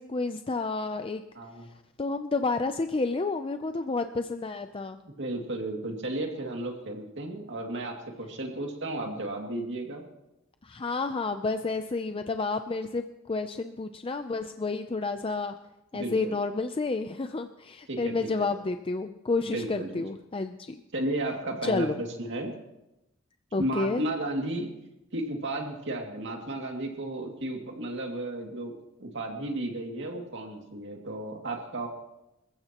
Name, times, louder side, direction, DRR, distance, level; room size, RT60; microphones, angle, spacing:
voice 1, 0.0-1.2 2.0-5.0 10.6-15.6 15.9-20.8 21.6-21.9 23.5-24.0, left 3 dB, 25° left, 8 dB, 0.5 m, -30 dB
voice 2, 1.3-1.7 5.2-10.0 15.9-16.4 17.9-18.5 19.4-20.0 20.9-22.5 23.6-24.7 25.1-28.7 29.0-31.9, right 1 dB, 60° right, 1 dB, 2.4 m, -33 dB
26.5 x 14.5 x 3.0 m, 0.93 s
head